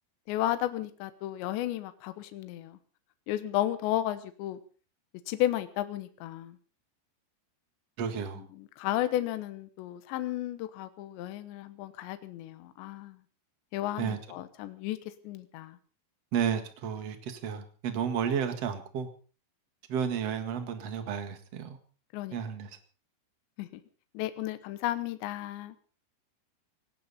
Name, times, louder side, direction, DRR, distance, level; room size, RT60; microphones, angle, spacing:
voice 1, 0.3-2.8 3.3-4.6 5.3-6.6 8.6-13.2 13.7-15.0 15.2-15.8 22.1-22.4 23.6-23.7 24.1-25.8, left 13 dB, 75° left, 3.1 m, -33 dB
voice 2, 8.0-8.4 14.0-14.2 16.3-19.1 19.9-21.8 22.3-22.7, right 7 dB, 55° right, 1.9 m, -32 dB
18.0 x 18.0 x 4.2 m
omnidirectional pair, 5.6 m